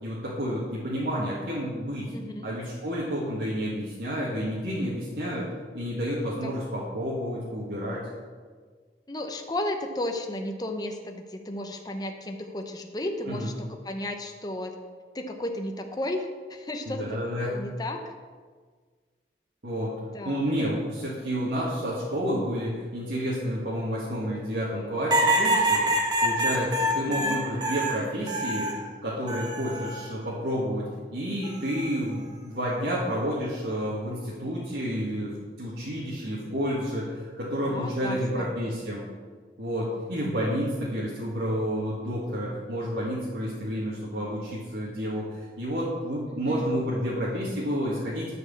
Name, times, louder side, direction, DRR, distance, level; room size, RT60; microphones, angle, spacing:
voice 1, 0.0-2.1 2.4-5.5 5.7-8.0 13.3-13.5 16.9-17.5 19.6-19.9 20.2-25.8 26.2-28.7 29.0-39.0 39.6-48.3, equal, 75° right, -7 dB, 1.8 m, -30 dB
voice 2, 2.1-2.5 6.4-6.5 9.1-14.8 15.1-17.1 17.5-18.0 20.1-20.5 27.1-27.4 37.7-38.5 46.3-46.8, left 1 dB, 20° left, 3 dB, 0.7 m, -34 dB
sound 1, 25.1-28.8 29.3-30.1 31.4-31.9, right 1 dB, 25° right, 1.1 m, -26 dB
11.0 x 4.7 x 7.1 m, 1.5 s
head